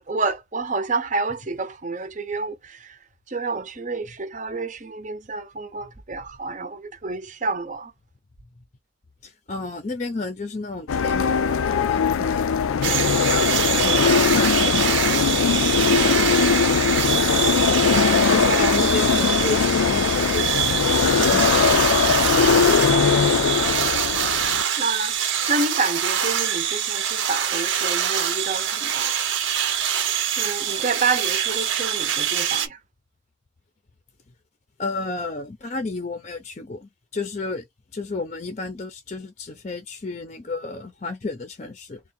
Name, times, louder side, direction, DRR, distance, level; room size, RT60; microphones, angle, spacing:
voice 1, 0.0-3.0 3.3-7.9 15.9-16.1 16.9-17.2 17.9-18.8 21.9-22.6 24.8-29.1 30.3-32.8, right 3 dB, 40° right, 0.6 m, -29 dB
voice 2, 9.2-16.2 18.3-20.7 21.0-21.5 34.8-37.6 37.9-42.0, left 3 dB, 35° left, 0.6 m, -32 dB
sound 1, 10.9-24.6, left 6 dB, 85° left, 0.4 m, -20 dB
sound 2, 12.8-32.7, right 9 dB, 70° right, 0.8 m, -24 dB
3.6 x 2.2 x 4.3 m
head